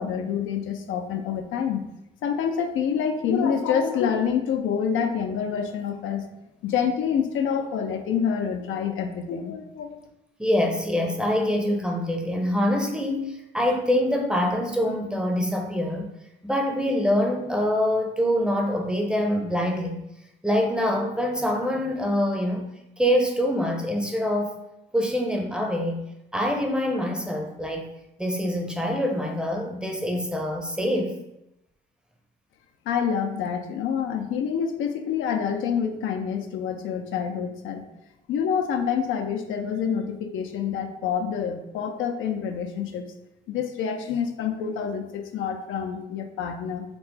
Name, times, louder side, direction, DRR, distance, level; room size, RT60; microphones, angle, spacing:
voice 1, 0.0-1.8 2.2-6.2 6.6-10.0 32.9-37.8 38.3-43.1 43.5-46.8, left 7 dB, 80° left, 6 dB, 0.5 m, -27 dB
voice 2, 10.4-16.1 16.4-20.0 20.4-22.6 23.0-24.5 24.9-26.0 26.3-27.9 28.2-31.1, equal, 5° right, 2 dB, 0.6 m, -25 dB
4.4 x 2.0 x 4.0 m, 0.86 s
cardioid pair, 90°, 20 cm